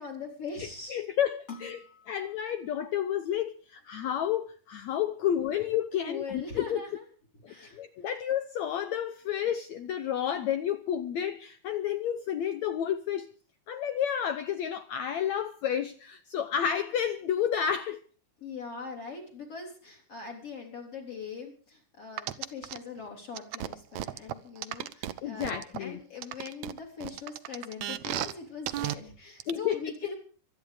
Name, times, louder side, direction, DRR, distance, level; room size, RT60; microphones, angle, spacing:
voice 1, 0.0-1.0 1.5-2.2 6.0-7.0 7.5-7.8 18.4-30.1, left 5 dB, 40° left, 4.5 m, -41 dB
voice 2, 0.6-1.8 2.1-6.8 7.4-13.3 13.7-18.0 25.2-26.0 29.5-29.8, left 9 dB, 90° left, 1.6 m, -31 dB
sound 1, 22.2-22.8 23.3-25.8 26.2-28.3 28.7-28.9 29.4-29.5, right 13 dB, 75° right, 1.7 m, -34 dB
25.0 x 10.5 x 5.0 m
omnidirectional pair, 4.4 m